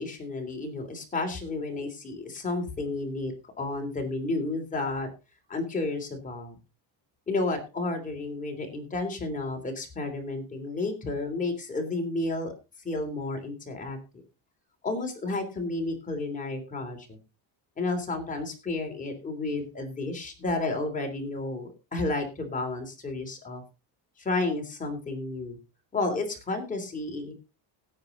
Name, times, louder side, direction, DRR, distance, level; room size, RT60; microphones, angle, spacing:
voice 1, 0.0-5.1 5.5-6.6 7.3-12.5 12.8-14.2 14.8-17.2 17.8-23.6 24.2-25.6 25.9-27.3, left 2 dB, 15° left, 3 dB, 3.3 m, -31 dB
17.0 x 7.9 x 4.0 m, 0.31 s
cardioid pair, 170°, 44 cm